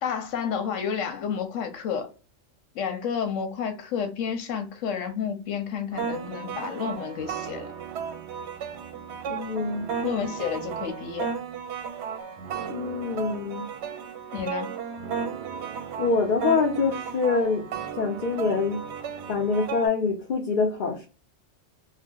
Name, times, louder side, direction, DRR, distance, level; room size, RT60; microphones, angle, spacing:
voice 1, 0.0-2.1 2.7-7.7 10.0-11.3 14.3-14.7, left 7 dB, 80° left, 1.0 m, -30 dB
sound 1, 5.9-19.9, right 7 dB, 70° right, 0.8 m, -34 dB
voice 2, 9.3-9.9 12.7-13.7 16.0-17.7 18.0-18.8 19.3-21.1, left 4 dB, 55° left, 0.6 m, -25 dB
2.7 x 2.2 x 3.5 m
omnidirectional pair, 1.3 m